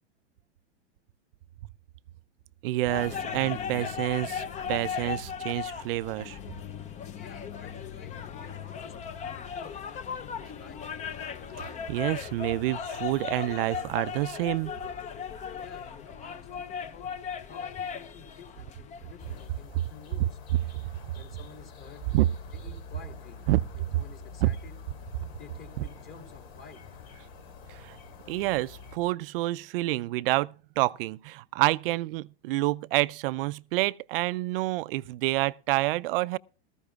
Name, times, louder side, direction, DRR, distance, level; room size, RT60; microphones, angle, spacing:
voice 1, 2.6-6.4 11.6-14.7 22.1-22.3 23.5-23.6 24.4-24.5 27.7-28.0 28.3-36.4, right 18 dB, 55° right, 0.5 m, -28 dB
sound 1, 2.8-19.5, left 7 dB, 20° left, 0.6 m, -37 dB
voice 2, 7.2-10.8 15.6-17.1 17.4-20.4 21.1-22.0 22.5-23.4 23.7-24.8 25.2-26.9, left 6 dB, 35° left, 3.0 m, -51 dB
sound 2, 19.2-29.0, left 5 dB, 60° left, 3.0 m, -47 dB
19.0 x 14.0 x 2.4 m
hypercardioid pair, 120°, 34 cm